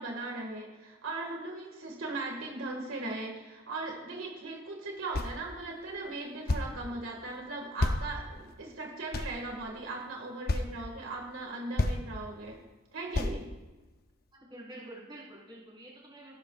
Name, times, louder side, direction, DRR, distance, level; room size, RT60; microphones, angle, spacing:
voice 1, 0.0-12.6 12.9-13.5, right 2 dB, 75° right, 0 dB, 2.0 m, -38 dB
sound 1, 5.1-5.4 6.5-6.8 7.8-8.5 9.1-9.8 10.5-10.7 11.4-11.5 11.8-12.0 13.1-13.4, left 2 dB, 50° left, 0.7 m, -30 dB
voice 2, 14.3-16.4, right 1 dB, 25° right, -6 dB, 4.6 m, -48 dB
17.0 x 13.0 x 2.5 m, 1.2 s
head